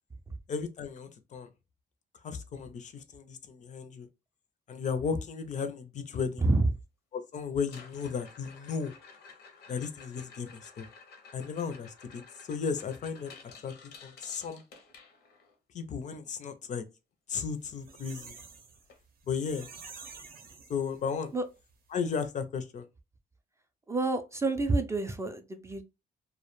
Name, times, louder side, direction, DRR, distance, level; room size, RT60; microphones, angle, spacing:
voice 1, 0.5-1.5 2.2-4.1 4.7-6.5 7.1-8.9 9.7-10.9 11.3-12.2 12.5-13.3 13.6-13.7 14.0-14.6 15.7-16.8 17.3-18.3 19.3-19.7 20.7-21.3 21.9-22.9, left 6 dB, 50° left, 0.4 m, -34 dB
voice 2, 6.4-6.7 21.3-21.4 23.9-25.8, right 2 dB, 15° right, 0.3 m, -28 dB
sound 1, 7.6-15.5 17.8-17.9 18.1-18.5 18.9-19.0 19.6-19.7 21.6-21.7, left 5 dB, 85° left, 0.6 m, -53 dB
sound 2, 17.4-21.3 21.7-21.8 22.0-22.2, right 5 dB, 65° right, 0.6 m, -49 dB
2.2 x 2.1 x 3.0 m
cardioid pair, 110°, 17 cm